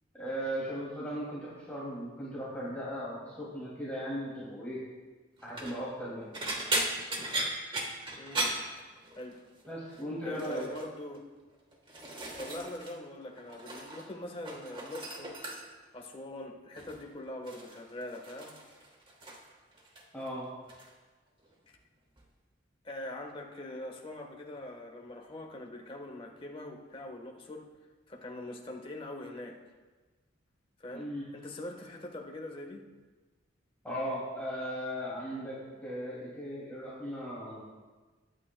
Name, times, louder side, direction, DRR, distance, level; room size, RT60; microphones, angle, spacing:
voice 1, 0.1-4.8 5.4-6.3 9.7-10.6 20.1-20.4 30.9-31.2 33.8-35.6 35.8-37.6, equal, 10° left, -9 dB, 2.5 m, -37 dB
sound 1, 5.4-5.8 6.3-9.4 9.6-10.0 10.3-10.9 11.5-13.0 13.2-14.1 14.3-15.9 16.8-17.0 17.5-19.5 19.8-20.3 20.7-20.9 22.2-22.3, right 2 dB, 25° right, 1.3 m, -37 dB
voice 2, 8.2-8.5 9.1-9.4 10.2-11.3 12.4-15.4 15.9-18.6 21.7-21.8 22.8-27.7 28.1-29.6 30.8-32.8, left 1 dB, 25° left, 1 dB, 1.2 m, -43 dB
21.0 x 8.8 x 2.2 m, 1.3 s
head